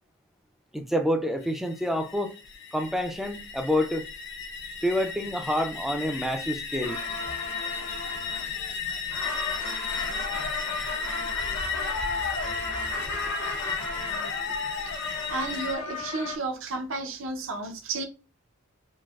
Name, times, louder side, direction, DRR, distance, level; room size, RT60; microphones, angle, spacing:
voice 1, 0.7-2.4 2.7-4.1 4.8-7.0, equal, ahead, 0.4 m, -28 dB
sound 1, 1.4-15.8, left 4 dB, 50° left, 0.6 m, -35 dB
sound 2, 6.8-16.4, left 3 dB, 90° left, 1.1 m, -34 dB
voice 2, 15.3-18.0, right 3 dB, 60° right, 0.7 m, -32 dB
4.0 x 2.6 x 2.4 m
head